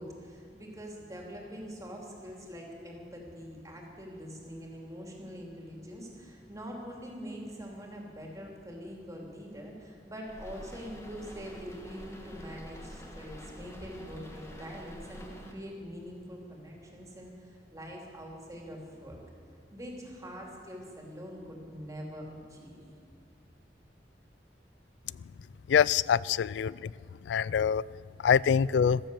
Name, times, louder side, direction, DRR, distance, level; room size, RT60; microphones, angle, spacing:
voice 1, 0.0-19.2 19.7-22.8, equal, 20° right, 0 dB, 3.0 m, -44 dB
sound 1, 10.2-15.5, equal, 15° left, 1.7 m, -47 dB
voice 2, 25.7-26.9 27.2-27.8 28.2-29.0, left 7 dB, 80° left, 22 dB, 0.3 m, -25 dB
14.5 x 13.5 x 6.9 m, 2.3 s
head